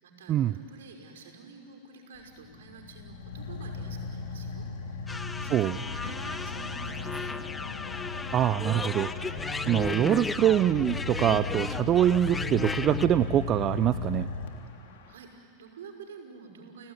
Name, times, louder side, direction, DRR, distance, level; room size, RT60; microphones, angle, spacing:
voice 1, 0.0-5.0 5.3-7.3 14.8-16.9, right 5 dB, 80° right, 2 dB, 5.6 m, -49 dB
Car / Idling, 2.2-15.1, left 4 dB, 75° left, 3.2 m, -37 dB
sound 1, 5.1-13.1, left 3 dB, 15° left, 0.9 m, -35 dB
voice 2, 8.3-9.1 9.7-14.3, right 11 dB, 40° right, 14 dB, 0.6 m, -24 dB
30.0 x 17.5 x 9.8 m, 2.5 s
hypercardioid pair, 100°, 0 cm